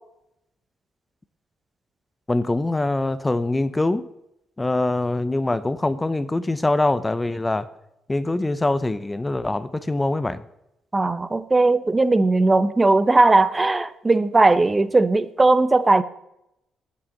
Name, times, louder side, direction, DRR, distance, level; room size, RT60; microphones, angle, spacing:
voice 1, 2.3-4.1 4.6-7.7 8.1-10.4, left 2 dB, 15° left, 15 dB, 0.6 m, -23 dB
voice 2, 10.9-16.0, right 2 dB, 20° right, 14 dB, 0.7 m, -18 dB
8.8 x 8.7 x 7.8 m, 0.83 s
cardioid pair, 90°, 0 cm